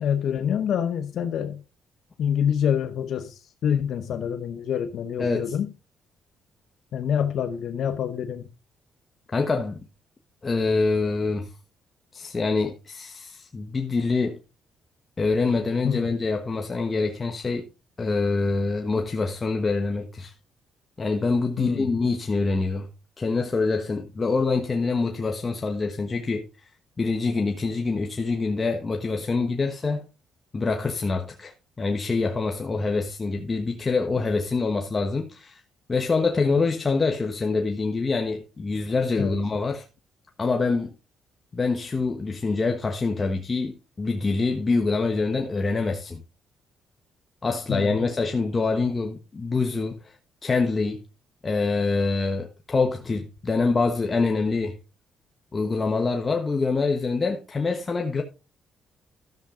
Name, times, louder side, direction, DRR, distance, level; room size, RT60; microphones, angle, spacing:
voice 1, 0.0-1.6 2.2-5.7 6.9-8.5 15.8-16.1 21.6-21.9 39.2-39.4 47.7-48.0, left 8 dB, 70° left, 0.9 m, -26 dB
voice 2, 5.2-5.5 9.3-9.8 10.4-11.5 12.1-14.4 15.2-17.7 18.0-20.3 21.0-22.9 23.2-26.4 27.0-30.1 30.5-35.6 35.9-39.8 40.4-40.9 41.5-46.2 47.4-51.0 51.4-54.8 55.5-58.2, left 3 dB, 30° left, 1.1 m, -25 dB
13.0 x 7.3 x 3.8 m
cardioid pair, 105°, 0 cm